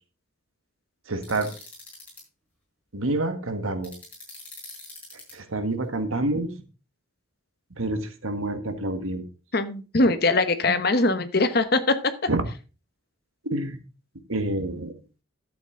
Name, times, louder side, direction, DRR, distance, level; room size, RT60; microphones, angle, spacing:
voice 1, 1.1-1.5 2.9-3.9 5.3-6.5 7.8-9.2 12.3-12.4 13.5-13.8 14.3-14.9, right 2 dB, 90° right, 8 dB, 1.6 m, -27 dB
sound 1, 1.2-2.2 3.8-5.3, left 2 dB, 5° left, 5.5 m, -43 dB
voice 2, 9.5-12.0, left 2 dB, 50° left, 10 dB, 1.0 m, -22 dB
11.5 x 8.1 x 3.8 m, 0.33 s
head